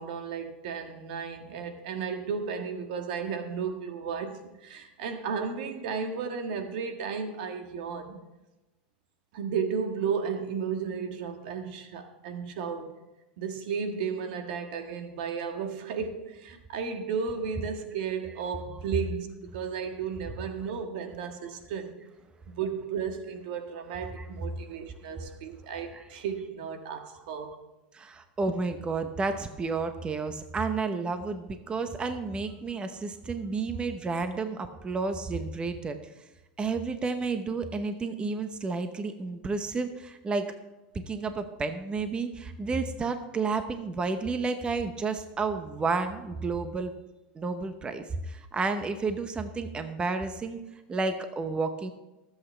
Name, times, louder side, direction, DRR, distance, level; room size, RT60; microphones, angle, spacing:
voice 1, 0.0-8.2 9.3-12.9 13.4-22.0 22.5-27.6, right 6 dB, 70° right, 6 dB, 1.6 m, -34 dB
voice 2, 27.9-36.0 36.6-40.5 40.9-46.9 47.3-50.6 50.9-51.9, right 4 dB, 20° right, 8 dB, 0.9 m, -31 dB
23.5 x 8.2 x 3.4 m, 1.0 s
supercardioid pair, 115°, 5 cm